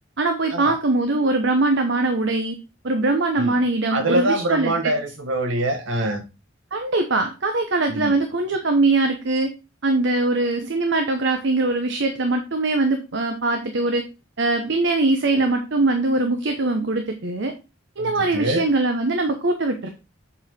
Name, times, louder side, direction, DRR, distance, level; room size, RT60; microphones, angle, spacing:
voice 1, 0.2-2.6 2.8-4.9 6.7-9.5 9.8-14.0 14.4-17.5 18.0-19.9, right 2 dB, 65° right, 0.9 m, -22 dB
voice 2, 3.9-6.2 7.9-8.2 15.3-15.4 18.0-18.7, right 1 dB, 80° right, 1.4 m, -24 dB
7.7 x 4.3 x 4.3 m
head